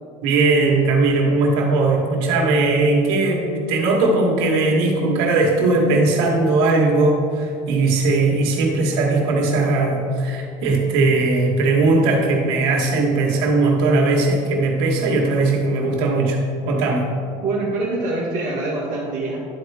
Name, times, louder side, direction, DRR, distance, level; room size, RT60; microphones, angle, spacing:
voice 1, 0.2-17.1, right 3 dB, 85° right, 0 dB, 1.6 m, -19 dB
voice 2, 17.4-19.4, right 2 dB, 50° right, -6 dB, 1.6 m, -24 dB
12.0 x 4.3 x 3.5 m, 2.4 s
supercardioid pair, 105°, 17 cm